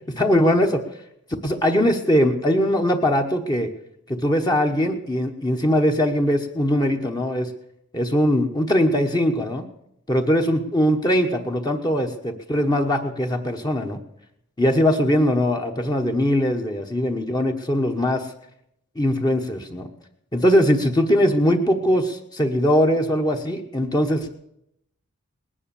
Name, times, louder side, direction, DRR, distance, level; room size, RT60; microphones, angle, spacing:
voice 1, 0.2-0.8 1.4-3.7 4.1-7.5 7.9-9.7 10.1-14.0 14.6-18.3 19.0-19.9 20.3-24.3, equal, 20° left, 4 dB, 1.1 m, -21 dB
19.5 x 10.0 x 7.0 m, 0.76 s
head